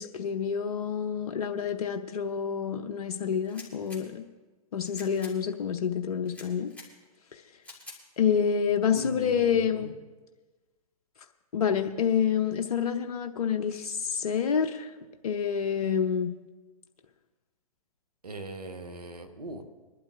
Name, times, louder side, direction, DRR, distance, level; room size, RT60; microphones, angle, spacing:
voice 1, 0.0-4.2 4.7-6.7 7.3-7.4 8.2-9.9 11.5-14.9 15.2-16.3, left 7 dB, 75° left, 5 dB, 0.8 m, -28 dB
sound 1, 3.4-4.0 4.8-5.3 6.2-6.9 7.6-8.0, left 3 dB, 5° left, 2.8 m, -47 dB
voice 2, 8.9-9.9 18.2-19.6, right 1 dB, 90° right, 8 dB, 1.3 m, -40 dB
24.0 x 12.0 x 2.5 m, 1.3 s
hypercardioid pair, 120°, 19 cm